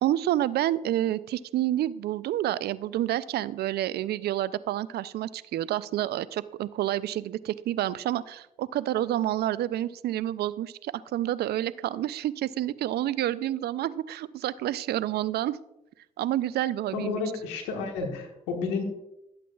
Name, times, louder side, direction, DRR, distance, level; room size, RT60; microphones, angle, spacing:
voice 1, 0.0-15.6 16.2-17.2, right 13 dB, 70° right, 18 dB, 0.4 m, -29 dB
voice 2, 16.9-18.8, left 4 dB, 85° left, 3 dB, 1.4 m, -31 dB
12.5 x 8.3 x 2.3 m, 0.88 s
hypercardioid pair, 45°, 17 cm